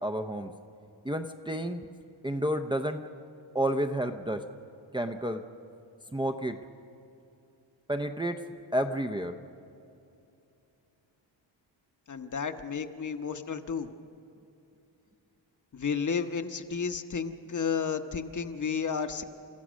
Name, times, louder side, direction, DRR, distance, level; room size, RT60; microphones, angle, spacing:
voice 1, 0.0-0.5 1.0-1.9 2.2-3.0 3.5-4.4 4.9-5.4 6.1-6.6 7.9-8.4 8.7-9.3, right 1 dB, 10° right, 4 dB, 0.6 m, -30 dB
voice 2, 12.1-13.9 15.7-19.2, left 6 dB, 40° left, 7 dB, 1.0 m, -32 dB
30.0 x 14.5 x 6.3 m, 2.7 s
wide cardioid pair, 125°, 46 cm